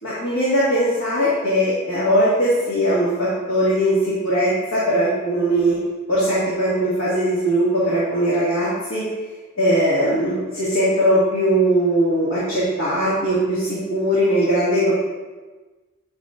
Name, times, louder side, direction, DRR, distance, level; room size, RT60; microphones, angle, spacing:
voice 1, 0.0-5.8 6.1-9.0 9.6-14.9, equal, 75° left, -9 dB, 2.1 m, -20 dB
9.6 x 6.8 x 2.6 m, 1.3 s
head